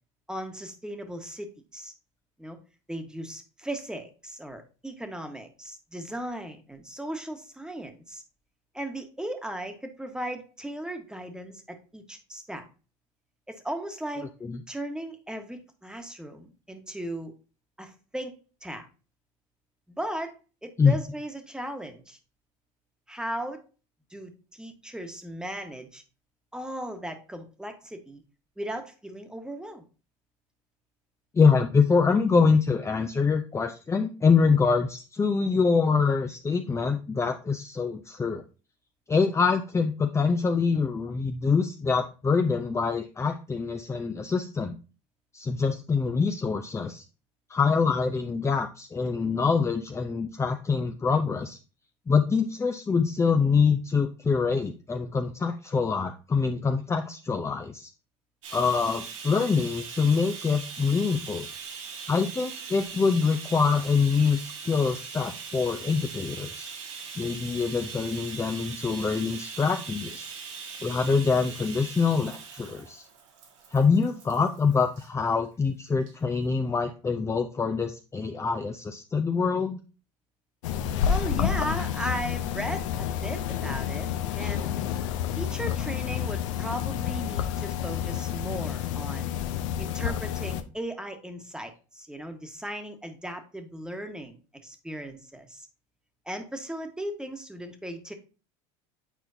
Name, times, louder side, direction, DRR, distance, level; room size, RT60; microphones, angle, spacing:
voice 1, 0.3-1.9 2.4-2.6 2.9-8.2 8.7-12.6 13.5-14.3 14.7-17.3 17.8-18.9 19.9-22.2 23.1-23.6 24.1-26.0 26.5-28.2 28.6-29.8 81.1-84.8 85.4-89.4 89.8-95.7 96.2-98.1, right 1 dB, 5° right, 5 dB, 1.4 m, -37 dB
voice 2, 14.2-14.6 20.8-20.9 31.3-38.4 39.1-44.7 45.3-47.0 47.5-51.6 52.1-57.9 58.5-61.5 62.1-66.7 67.2-70.3 70.8-73.0 73.7-79.8, left 5 dB, 15° left, 5 dB, 0.6 m, -25 dB
Bathtub (filling or washing), 58.4-75.1 76.0-76.1 76.5-76.6, right 5 dB, 85° right, 1.8 m, -41 dB
sound 1, 80.6-90.6, left 9 dB, 80° left, 0.7 m, -29 dB
9.0 x 4.4 x 2.8 m, 0.34 s
hypercardioid pair, 90°, 16 cm